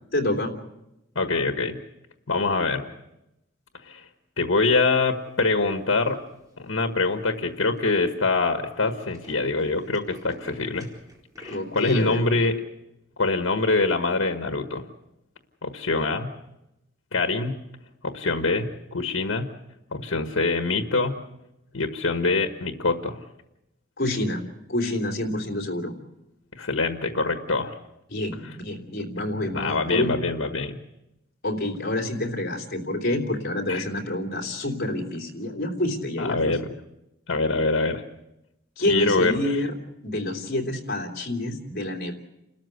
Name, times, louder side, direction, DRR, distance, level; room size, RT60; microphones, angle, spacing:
voice 1, 0.1-0.5 11.5-12.2 24.0-24.4 24.7-25.9 28.1-30.1 31.4-36.5 38.8-39.7 40.0-42.1, left 1 dB, 50° left, 3 dB, 3.2 m, -27 dB
voice 2, 1.1-1.8 2.3-2.9 3.8-4.0 4.4-6.2 6.6-10.9 11.4-12.6 13.2-14.8 15.6-16.3 17.1-17.6 18.0-19.5 19.9-21.2 21.7-23.2 26.6-27.8 28.4-28.5 29.5-30.8 33.7-33.8 36.2-36.7 37.3-38.0 38.9-39.6, left 3 dB, 85° left, 6 dB, 1.4 m, -24 dB
Tools, 6.1-6.5 7.1-7.2 7.4-7.5 7.8-8.0 8.3-8.4 8.7-12.1, equal, 20° right, 4.5 m, -49 dB
29.5 x 13.5 x 8.1 m, 0.89 s
head